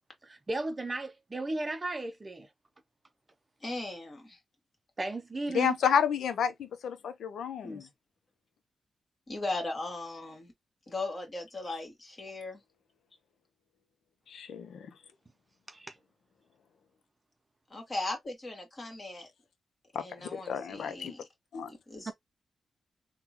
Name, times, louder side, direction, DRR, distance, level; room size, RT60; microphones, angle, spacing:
voice 1, 0.2-2.5 5.0-5.8 15.7-16.0 22.1-22.2, right 2 dB, 30° right, 0.5 m, -35 dB
voice 2, 3.6-4.4 7.6-7.9 9.3-10.5 10.9-12.6 17.7-19.3 20.0-21.2 21.7-22.1, left 2 dB, 40° left, 1.7 m, -38 dB
voice 3, 5.5-7.9 11.7-11.8 14.3-14.9 20.3-21.1 21.5-21.7, left 8 dB, 90° left, 0.5 m, -30 dB
3.6 x 2.2 x 2.8 m
cardioid pair, 80°, 0 cm